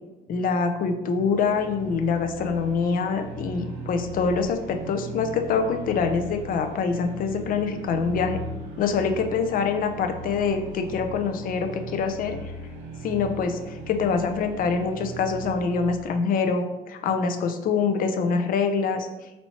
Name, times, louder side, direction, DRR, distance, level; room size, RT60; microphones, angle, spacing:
voice 1, 0.3-8.4 8.8-12.5 13.0-19.1, left 5 dB, 55° left, 7 dB, 0.6 m, -25 dB
sound 1, 1.3-16.1, right 2 dB, 85° right, 0.9 m, -38 dB
4.3 x 4.2 x 2.9 m, 1.1 s
cardioid pair, 110°, 17 cm